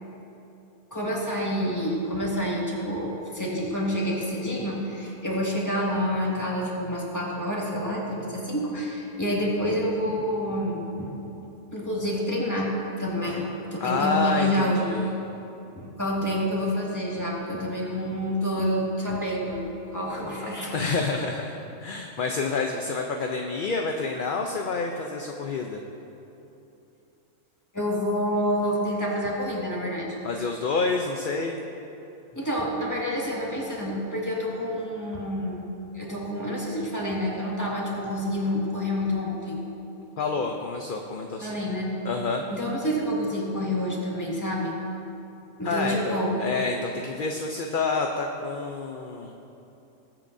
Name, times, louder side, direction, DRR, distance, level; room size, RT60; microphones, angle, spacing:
voice 1, 0.9-11.1 11.7-12.7 13.0-15.0 15.8-20.7 27.7-30.2 32.3-35.6 35.9-39.6 41.4-42.0 42.5-44.8 45.6-46.3, equal, 15° left, -4 dB, 1.9 m, -28 dB
voice 2, 13.8-15.1 20.7-21.6 21.8-25.8 30.2-31.6 40.2-41.6 42.0-42.4 45.6-49.3, left 4 dB, 50° left, 2 dB, 0.7 m, -28 dB
20.5 x 8.9 x 2.7 m, 2.9 s
omnidirectional pair, 1.3 m